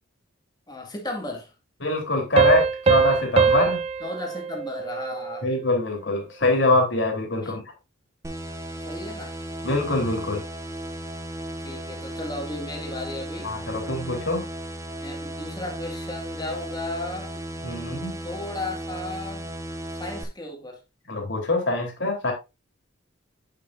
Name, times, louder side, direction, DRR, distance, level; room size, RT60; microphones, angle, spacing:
voice 1, 0.7-1.5 4.0-5.5 7.4-7.5 8.9-9.4 11.6-13.5 15.0-17.3 18.2-19.5 19.9-20.8, left 2 dB, 20° left, 1.9 m, -35 dB
voice 2, 1.8-3.8 5.4-7.6 9.6-10.4 13.4-14.4 17.6-18.1 21.1-22.3, left 2 dB, 65° left, 3.3 m, -24 dB
Piano, 2.4-5.7, right 5 dB, 30° right, 0.4 m, -23 dB
sound 1, 8.2-20.2, right 1 dB, 15° right, 0.9 m, -35 dB
8.3 x 7.0 x 2.6 m
head